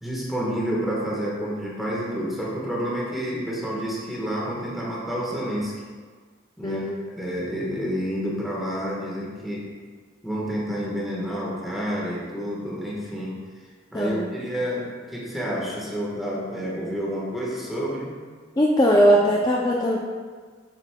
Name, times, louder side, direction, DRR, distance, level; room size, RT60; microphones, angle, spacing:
voice 1, 0.0-5.7 6.6-9.7 10.2-13.3 13.9-18.1, equal, ahead, -6 dB, 1.3 m, -29 dB
voice 2, 6.6-7.0 13.9-14.3 18.6-20.0, equal, 20° left, -2 dB, 0.4 m, -20 dB
7.5 x 6.2 x 2.2 m, 1.5 s
head